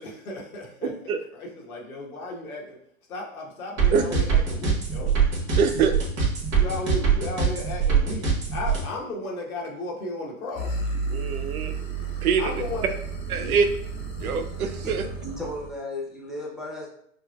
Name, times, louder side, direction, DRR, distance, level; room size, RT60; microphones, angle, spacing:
voice 1, 0.0-0.9 1.3-2.8 3.1-5.1 6.5-10.8 12.4-12.9, left 2 dB, 80° left, -1 dB, 1.2 m, -34 dB
sound 1, 3.8-8.8, right 6 dB, 35° right, 1.4 m, -22 dB
voice 2, 5.6-5.9 11.1-11.7 12.2-12.4 13.3-13.7 14.2-15.0, right 6 dB, 85° right, 7 dB, 0.6 m, -23 dB
sound 2, 10.5-15.8, right 3 dB, 40° left, 0.9 m, -32 dB
voice 3, 15.2-16.9, left 1 dB, ahead, -5 dB, 0.5 m, -35 dB
5.4 x 2.3 x 2.2 m, 0.69 s
hypercardioid pair, 110°, 43 cm